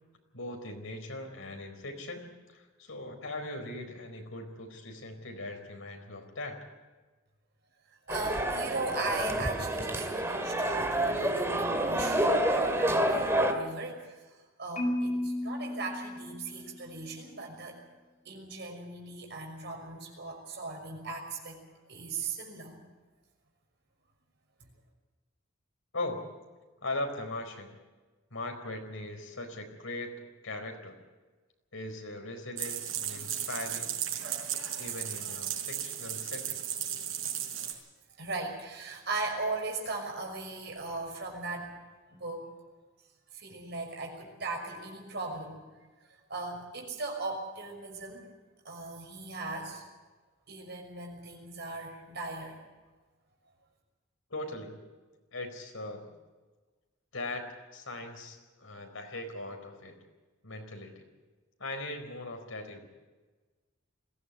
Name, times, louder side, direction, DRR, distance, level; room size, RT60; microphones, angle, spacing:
voice 1, 0.3-6.6 25.9-26.2 26.8-27.7 28.3-31.0 31.7-34.0 34.8-36.6 54.3-54.8 55.3-56.1 57.1-57.4 57.7-60.0 60.4-61.0 61.6-62.9, left 2 dB, 85° left, 3 dB, 4.4 m, -40 dB
sound 1, 8.1-13.5, right 1 dB, 15° right, 2.2 m, -28 dB
voice 2, 8.1-14.2 14.6-17.8 18.2-21.6 21.9-22.8 37.6-37.7 38.2-41.7 42.1-42.4 43.3-45.6 46.3-48.3 48.6-49.8 50.5-52.6, right 3 dB, 55° right, 2 dB, 6.0 m, -38 dB
Marimba xylophone, 14.8-16.9, left 1 dB, 40° left, 4.5 m, -34 dB
sound 2, 32.6-37.7, right 10 dB, 80° right, 5.0 m, -35 dB
21.5 x 16.0 x 8.4 m, 1.3 s
head